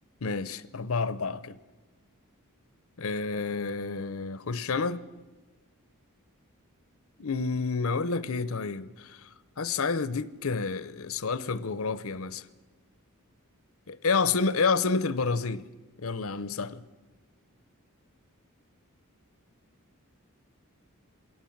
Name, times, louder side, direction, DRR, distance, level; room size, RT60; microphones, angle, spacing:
voice 1, 0.2-1.6 3.0-5.1 7.2-9.3 9.6-12.4 13.9-15.6 16.0-16.8, left 4 dB, 65° left, 0.7 m, -29 dB
21.0 x 18.0 x 7.3 m
head